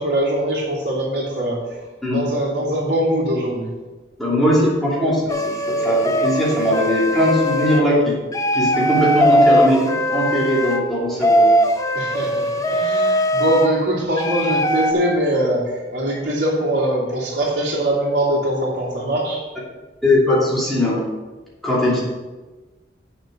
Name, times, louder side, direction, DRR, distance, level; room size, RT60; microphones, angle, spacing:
voice 1, 0.0-1.6 2.1-3.7 11.9-19.5 21.8-22.0, right 1 dB, 80° right, -5 dB, 3.1 m, -22 dB
voice 2, 4.2-8.2 8.5-11.5 20.0-21.0 21.6-22.0, equal, ahead, -7 dB, 2.9 m, -19 dB
sound 1, 5.3-7.9 8.3-10.8 11.2-13.7 14.2-14.9, equal, 20° left, 0.7 m, -19 dB
8.5 x 6.8 x 5.1 m, 1.2 s
head